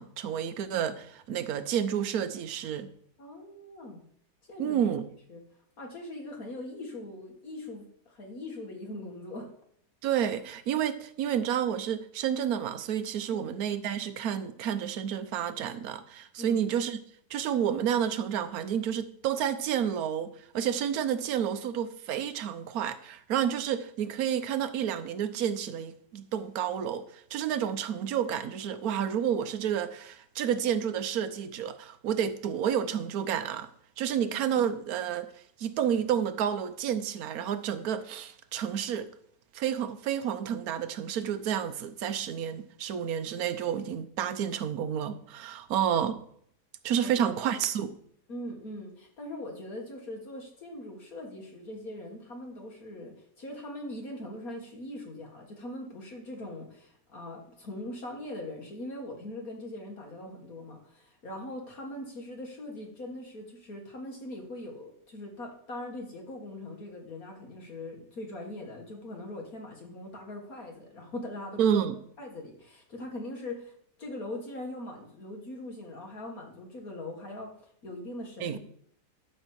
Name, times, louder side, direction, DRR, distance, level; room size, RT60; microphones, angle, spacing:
voice 1, 0.0-2.9 4.6-5.1 10.0-17.0 17.3-33.7 34.0-35.3 35.6-39.1 39.5-46.2 46.8-47.9 71.6-71.9 78.4-78.6, right 9 dB, 65° right, 1.2 m, -30 dB
voice 2, 3.2-4.0 4.5-5.0 5.3-5.4 5.8-9.5 13.3-13.5 16.4-16.7 34.3-34.6 47.0-47.5 48.3-71.8 72.2-73.7 74.0-77.5 77.8-78.6, left 1 dB, 60° left, 2.1 m, -41 dB
12.5 x 4.3 x 7.5 m
omnidirectional pair, 1.7 m